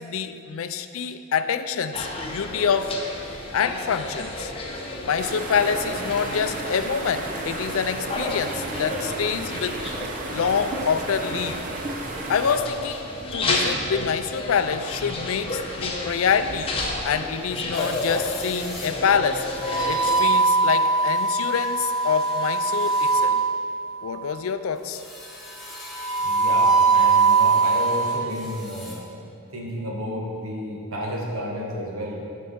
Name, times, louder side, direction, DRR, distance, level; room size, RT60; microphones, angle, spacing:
voice 1, 0.0-3.0 3.5-4.5 5.0-9.8 10.3-11.6 12.3-16.8 17.0-19.5 19.9-23.4 24.0-25.0, left 6 dB, 70° left, 11 dB, 0.4 m, -26 dB
sound 1, 1.9-20.2, left 2 dB, 25° left, 0.8 m, -32 dB
sound 2, 5.2-12.6, right 2 dB, 35° right, 0.7 m, -33 dB
sound 3, 17.7-18.9 19.6-23.8 25.0-28.2 28.7-28.9, right 4 dB, ahead, 1.2 m, -22 dB
voice 2, 26.2-29.0 29.5-32.2, equal, 70° right, -2 dB, 1.4 m, -31 dB
10.5 x 5.5 x 4.3 m, 2.6 s
head